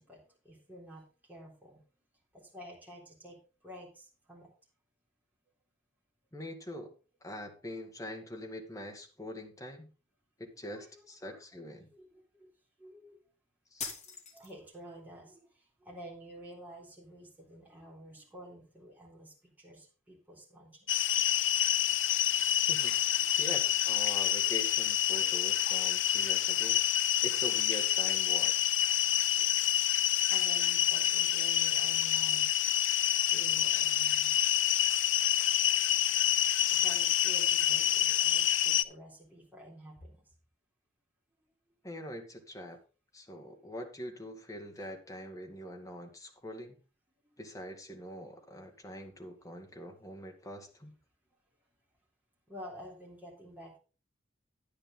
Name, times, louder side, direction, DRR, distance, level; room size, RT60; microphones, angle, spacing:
voice 1, 0.0-1.8 2.3-4.5 10.7-11.6 11.9-12.5 12.8-13.2 14.1-21.0 23.1-23.3 29.3-29.8 30.1-32.5 33.2-34.8 35.4-36.0 36.7-40.3 41.7-41.8 43.5-43.6 47.2-47.4 52.5-53.8, equal, 10° right, -4 dB, 3.7 m, -51 dB
voice 2, 6.3-6.9 7.2-9.9 10.4-11.9 13.7-13.9 22.7-26.8 27.2-28.5 41.8-42.8 43.1-46.8 47.4-51.0, equal, 15° left, 3 dB, 1.9 m, -44 dB
sound 1, 13.8-14.8, left 5 dB, 35° left, 3.0 m, -42 dB
sound 2, 20.9-38.8, left 11 dB, 75° left, 0.6 m, -28 dB
10.0 x 9.7 x 3.9 m, 0.34 s
head